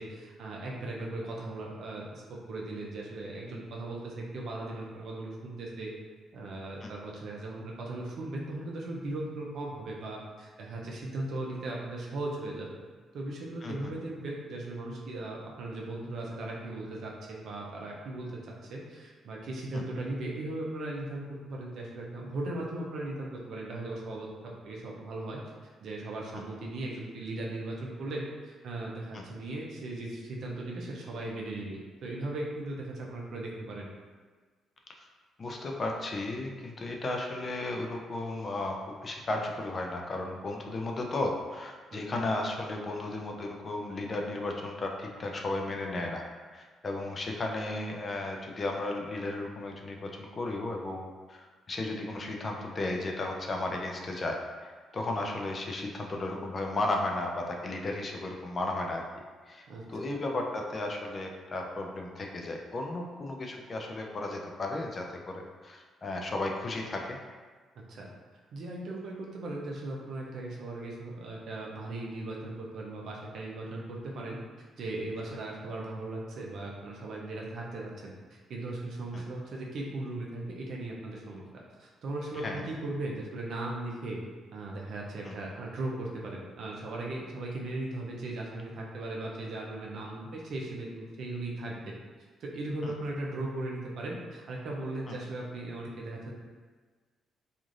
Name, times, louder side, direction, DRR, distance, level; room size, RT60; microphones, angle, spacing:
voice 1, 0.0-2.2 2.5-5.9 6.3-12.7 13.1-18.3 18.7-24.3 24.6-25.4 25.8-33.9 41.9-42.0 59.7-59.8 60.1-60.2 67.9-68.1 68.5-74.4 74.8-81.4 81.8-84.2 84.5-91.9 92.4-96.3, right 2 dB, 65° right, -2 dB, 0.6 m, -38 dB
voice 2, 35.4-46.2 46.5-54.3 54.6-59.0 59.5-67.0 79.1-79.2 82.3-82.6 85.2-85.3 92.8-92.9 95.1-95.2, left 2 dB, 40° left, 1 dB, 0.4 m, -34 dB
3.1 x 2.5 x 2.5 m, 1.4 s
cardioid pair, 90°, 0 cm